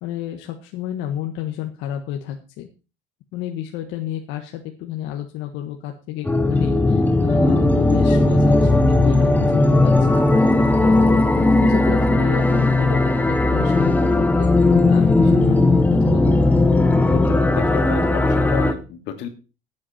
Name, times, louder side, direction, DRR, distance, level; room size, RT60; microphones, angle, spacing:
voice 1, 0.0-2.7 3.3-10.2 10.8-16.4, left 11 dB, 90° left, 3 dB, 1.6 m, -30 dB
sound 1, 6.3-18.7, left 2 dB, 10° left, 1.1 m, -17 dB
voice 2, 17.1-19.3, left 10 dB, 70° left, 6 dB, 2.5 m, -32 dB
15.5 x 8.6 x 4.4 m, 0.33 s
cardioid pair, 160°, 19 cm